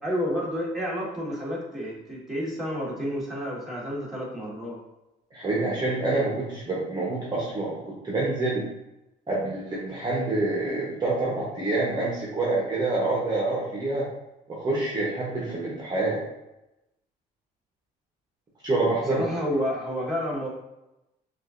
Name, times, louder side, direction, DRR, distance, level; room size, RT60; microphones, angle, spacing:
voice 1, 0.0-4.8 19.1-20.5, equal, ahead, -6 dB, 1.5 m, -30 dB
voice 2, 5.3-8.6 9.3-14.1 14.5-16.2 18.6-19.6, right 2 dB, 25° right, -5 dB, 1.0 m, -27 dB
5.9 x 2.6 x 2.5 m, 0.93 s
cardioid pair, 110°, 17 cm